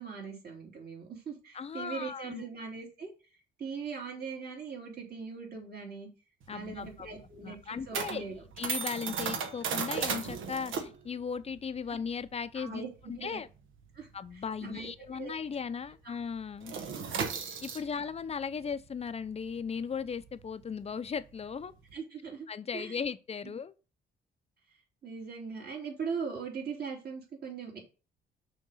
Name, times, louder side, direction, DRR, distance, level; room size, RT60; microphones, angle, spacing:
voice 1, 0.0-3.1 3.6-6.1 6.5-8.4 12.5-12.9 13.2-13.4 13.9-15.3 21.9-22.5 22.7-23.0 25.0-27.8, right 5 dB, 50° right, 3.2 m, -40 dB
voice 2, 1.5-2.4 6.5-7.1 7.4-8.2 8.6-13.5 14.1-16.7 17.6-21.7 22.5-23.7, left 6 dB, 30° left, 0.6 m, -37 dB
sound 1, 6.4-15.4 15.6-15.9 16.2-21.9, right 6 dB, 80° right, 1.3 m, -37 dB
6.2 x 3.7 x 5.6 m
cardioid pair, 90°, 20 cm